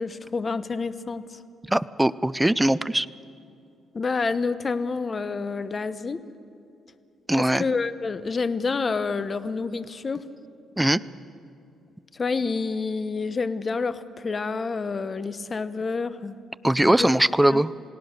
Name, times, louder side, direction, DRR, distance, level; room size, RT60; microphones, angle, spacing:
voice 1, 0.0-1.4 3.9-6.2 7.4-10.2 12.1-16.4 16.8-17.1 17.5-17.6, left 4 dB, 35° left, 13 dB, 1.0 m, -28 dB
voice 2, 1.7-3.1 7.3-7.6 10.8-11.0 16.6-17.7, right 1 dB, 10° right, 17 dB, 0.5 m, -21 dB
28.5 x 18.0 x 6.6 m, 2.6 s
cardioid pair, 90°, 0 cm